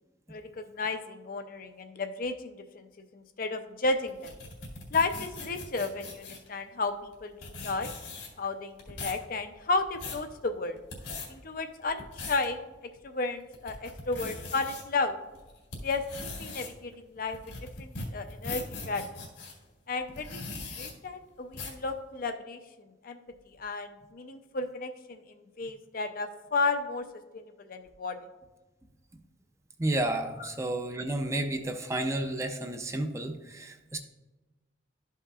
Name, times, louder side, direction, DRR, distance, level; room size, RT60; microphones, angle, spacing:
voice 1, 0.3-2.9 3.1-4.3 4.9-7.3 7.6-7.9 8.4-10.8 11.3-12.6 13.0-15.2 15.8-17.4 17.8-19.0 19.9-22.6 23.0-23.2 23.6-27.0 27.3-28.2 30.4-30.5, left 3 dB, 50° left, 7 dB, 0.5 m, -33 dB
sound 1, 4.1-6.5 7.1-7.2 7.4-8.5 8.8-9.2 9.7-10.2 10.8-11.3 11.8-12.5 13.0-13.1 13.5-14.8 15.3-19.5 20.1-20.9 21.5-21.8, left 3 dB, 80° left, 1.7 m, -40 dB
voice 2, 29.8-34.0, right 1 dB, 15° right, 6 dB, 0.5 m, -31 dB
12.0 x 5.6 x 2.4 m, 1.2 s
head